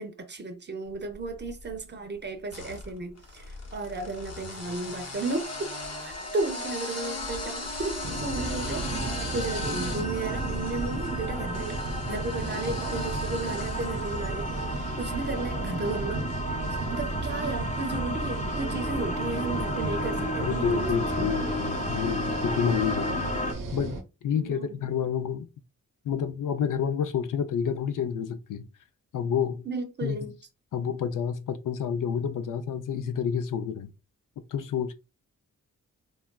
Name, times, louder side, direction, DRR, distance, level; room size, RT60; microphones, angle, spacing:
voice 1, 0.0-5.7 6.0-11.8 12.1-14.5 15.0-16.3 16.9-21.3 24.3-24.8 29.7-30.4, right 3 dB, 35° right, 0.6 m, -34 dB
sound 1, 1.1-1.8 2.5-14.8, left 3 dB, 55° left, 0.8 m, -39 dB
sound 2, 5.2-23.5, left 1 dB, 25° left, 0.4 m, -35 dB
sound 3, 8.0-24.0, right 3 dB, 80° right, 0.7 m, -33 dB
voice 2, 20.4-23.4 23.7-24.0 24.2-25.5 26.0-28.7 29.1-29.6 30.0-30.2 30.7-33.9 34.5-34.9, left 7 dB, 75° left, 0.5 m, -29 dB
3.2 x 2.3 x 2.2 m
wide cardioid pair, 105°, 32 cm